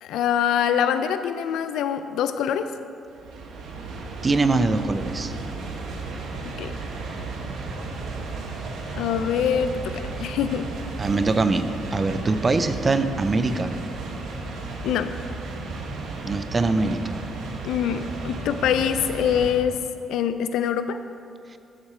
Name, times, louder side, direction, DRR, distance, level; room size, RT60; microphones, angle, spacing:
voice 1, 0.0-2.7 6.4-6.8 8.9-10.7 14.8-15.1 17.6-19.8 20.1-21.0, left 8 dB, 85° left, 10 dB, 0.4 m, -24 dB
sound 1, 3.1-19.5, right 3 dB, 75° right, 1.0 m, -34 dB
voice 2, 4.2-5.3 11.0-13.7 16.2-17.2, right 3 dB, 30° right, 10 dB, 0.5 m, -23 dB
12.5 x 4.3 x 4.9 m, 2.5 s
cardioid pair, 90°, 0 cm